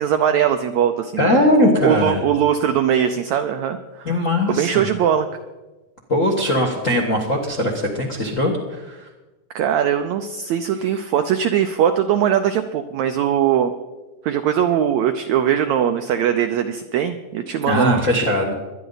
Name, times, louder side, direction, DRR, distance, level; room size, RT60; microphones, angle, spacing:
voice 1, 0.0-1.3 1.6-4.2 4.5-5.3 9.5-13.7 14.2-18.0, right 9 dB, 80° right, 7 dB, 1.6 m, -20 dB
voice 2, 1.2-2.2 4.0-4.8 6.1-9.1 17.7-18.5, left 1 dB, 50° left, 1 dB, 0.9 m, -20 dB
23.0 x 10.5 x 4.0 m, 1.1 s
omnidirectional pair, 4.0 m